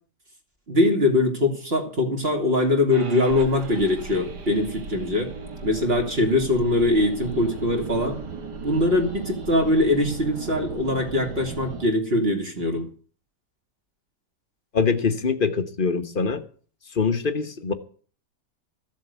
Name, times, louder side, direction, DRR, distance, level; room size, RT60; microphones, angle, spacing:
voice 1, 0.7-5.3 5.6-8.2 8.6-12.9, left 2 dB, 35° right, 3 dB, 2.7 m, -22 dB
sound 1, 2.9-11.9, right 4 dB, 75° right, 2.3 m, -37 dB
voice 2, 14.7-16.4 16.9-17.7, left 5 dB, 35° left, 9 dB, 1.1 m, -23 dB
14.5 x 7.3 x 8.1 m, 0.42 s
omnidirectional pair, 1.8 m